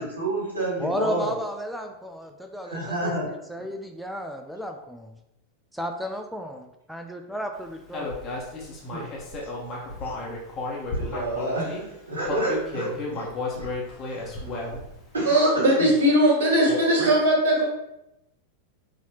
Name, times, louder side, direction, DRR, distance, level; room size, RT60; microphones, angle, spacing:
voice 1, 0.0-1.3 2.6-3.7 8.9-9.1 10.0-10.1 10.9-13.3 13.5-14.6 15.1-15.9 16.7-17.1, right 1 dB, 75° right, -4 dB, 1.6 m, -30 dB
voice 2, 0.8-5.2 5.7-8.2, equal, ahead, 5 dB, 0.3 m, -33 dB
Human voice, 7.9-11.8 12.2-15.0, left 2 dB, 30° left, 1.2 m, -33 dB
voice 3, 15.3-17.6, right 1 dB, 60° right, -2 dB, 1.6 m, -19 dB
5.4 x 2.8 x 2.9 m, 0.88 s
figure-of-eight pair, 90°, 0 cm